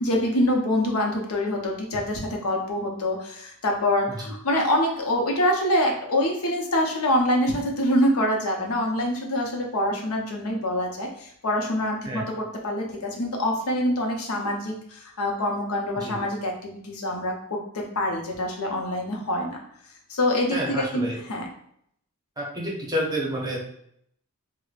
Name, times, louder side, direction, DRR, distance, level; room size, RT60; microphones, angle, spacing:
voice 1, 0.0-19.6 20.1-21.5, left 1 dB, 80° left, 1 dB, 0.7 m, -25 dB
voice 2, 20.5-21.2 22.4-23.6, equal, 20° right, -2 dB, 0.7 m, -29 dB
4.7 x 2.1 x 2.4 m, 0.71 s
head